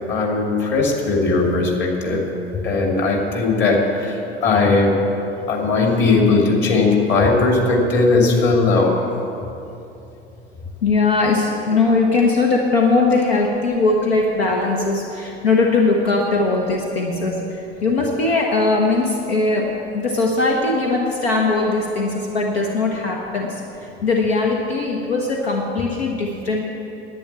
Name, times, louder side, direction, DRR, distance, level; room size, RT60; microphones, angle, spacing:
voice 1, 0.1-2.3 2.6-5.0 5.5-9.0, left 3 dB, 35° left, 0 dB, 2.6 m, -18 dB
voice 2, 10.8-26.6, left 3 dB, 70° left, -1 dB, 1.4 m, -20 dB
11.0 x 9.2 x 8.3 m, 2.9 s
figure-of-eight pair, 75°, 32 cm